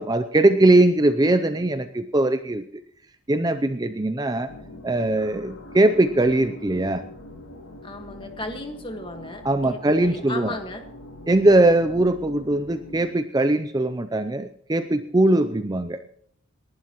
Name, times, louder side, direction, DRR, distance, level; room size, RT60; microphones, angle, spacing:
voice 1, 0.0-2.6 3.3-4.5 4.8-7.0 9.4-10.6 11.3-16.0, right 2 dB, 20° right, 10 dB, 0.5 m, -20 dB
sound 1, 4.5-13.0, left 1 dB, 85° left, 4.8 m, -43 dB
voice 2, 7.8-10.9, left 2 dB, 25° left, 6 dB, 1.6 m, -35 dB
28.5 x 11.5 x 3.0 m, 0.66 s
head